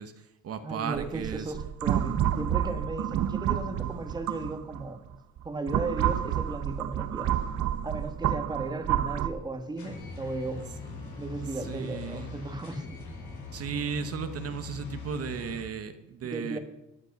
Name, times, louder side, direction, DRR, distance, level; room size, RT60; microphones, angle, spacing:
voice 1, 0.0-1.5 11.0-11.2 11.5-12.3 13.5-16.6, right 6 dB, 55° right, 9 dB, 1.0 m, -35 dB
voice 2, 0.6-5.0 5.4-7.3 7.8-10.6 11.1-12.8 16.3-16.6, right 3 dB, 15° right, 7 dB, 1.3 m, -35 dB
sound 1, 1.0-4.8 5.4-9.3, right 10 dB, 75° right, 1.0 m, -29 dB
sound 2, 9.8-15.6, left 4 dB, 80° left, 5.5 m, -41 dB
13.5 x 11.0 x 5.9 m, 0.90 s
cardioid pair, 160°, 29 cm